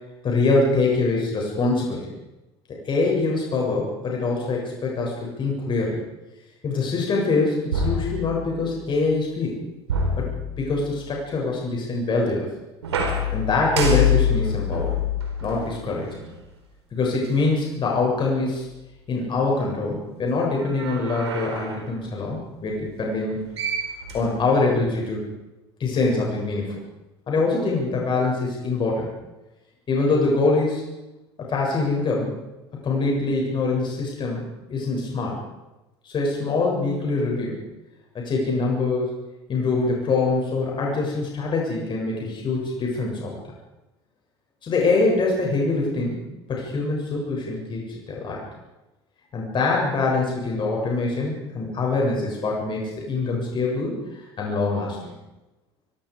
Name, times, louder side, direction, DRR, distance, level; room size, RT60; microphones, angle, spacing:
voice 1, 0.2-2.1 2.8-6.0 6.6-9.6 10.2-10.3 10.6-12.5 13.3-15.0 15.4-16.1 16.9-18.6 19.1-23.4 24.1-25.3 25.8-26.8 27.3-29.1 29.9-30.8 31.5-32.3 32.8-34.4 34.7-35.4 36.0-37.6 38.1-39.1 39.5-43.4 44.6-46.2 46.5-48.4 49.3-55.1, left 3 dB, 35° left, -2 dB, 7.5 m, -24 dB
sound 1, 7.7-8.8 9.9-11.0 12.8-16.4 17.2-17.3 20.6-21.9 23.2-23.3 23.6-24.8, left 4 dB, 75° right, 4.8 m, -26 dB
26.0 x 24.0 x 5.1 m, 1.0 s
figure-of-eight pair, 65°, 14 cm